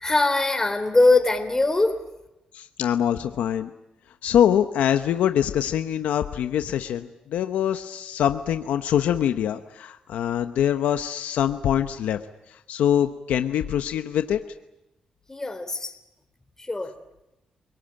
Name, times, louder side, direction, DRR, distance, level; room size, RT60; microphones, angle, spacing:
voice 1, 0.0-2.0 15.3-15.9 16.7-16.9, left 2 dB, 20° left, 6 dB, 3.6 m, -21 dB
voice 2, 2.5-3.7 4.2-12.2 12.5-14.4, left 10 dB, 90° left, 8 dB, 0.9 m, -24 dB
28.0 x 19.0 x 8.9 m, 0.96 s
cardioid pair, 70°, 2 cm